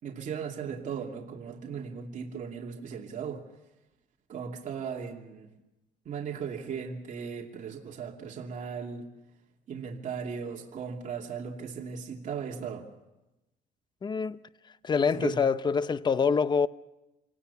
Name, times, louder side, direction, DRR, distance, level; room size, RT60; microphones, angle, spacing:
voice 1, 0.0-3.5 4.3-5.5 6.0-9.1 9.7-12.9 15.1-15.4, right 6 dB, 50° right, 2.7 m, -37 dB
voice 2, 14.0-14.4 14.8-16.7, left 5 dB, 25° left, 0.7 m, -25 dB
27.0 x 18.5 x 7.0 m
cardioid pair, 110°, 17 cm